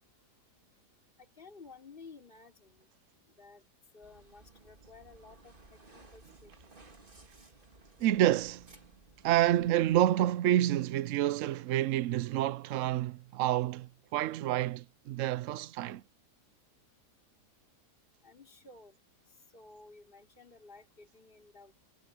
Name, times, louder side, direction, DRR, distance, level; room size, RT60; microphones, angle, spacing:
voice 1, 1.2-2.9 3.4-3.6 3.9-6.5 18.2-19.0 19.3-21.7, left 4 dB, 30° left, 3.6 m, -54 dB
sound 1, 4.0-10.0, right 2 dB, 30° right, 2.5 m, -58 dB
voice 2, 8.0-8.7 9.2-16.0, right 13 dB, 70° right, 0.7 m, -28 dB
omnidirectional pair, 1.8 m